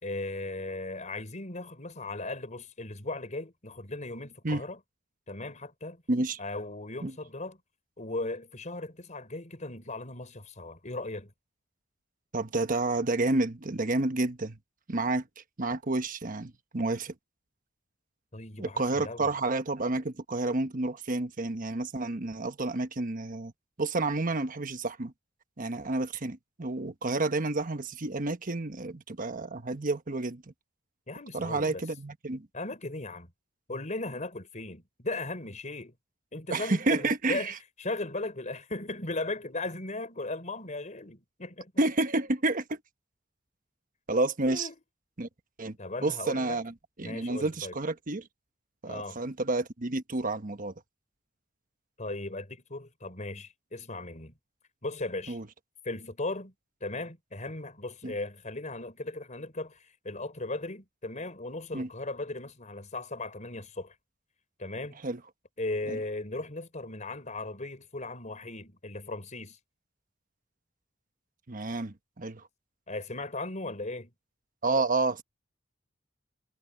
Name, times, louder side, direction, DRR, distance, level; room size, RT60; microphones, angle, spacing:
voice 1, 0.0-4.8 5.3-6.0 6.4-7.6 8.0-11.3 18.3-19.3 31.1-31.8 32.5-33.3 33.7-35.9 36.3-41.7 44.5-44.8 45.8-46.6 47.0-47.8 48.9-49.2 52.0-54.3 54.8-55.4 55.8-56.5 56.8-63.9 64.6-65.0 65.6-69.6 72.9-74.1, left 2 dB, 40° left, 4.2 m, -37 dB
voice 2, 6.1-6.4 7.0-7.1 12.3-14.6 14.9-15.2 15.6-17.1 18.6-23.5 23.8-25.1 25.6-30.4 31.3-32.5 36.5-37.5 41.8-42.8 44.1-44.7 45.2-45.3 45.6-45.8 46.0-46.7 47.0-48.2 48.8-50.7 55.3-55.4 58.0-58.1 61.7-61.9 65.0-65.2 65.9-66.0 71.5-72.4 74.6-75.2, right 2 dB, 45° right, 1.2 m, -30 dB
head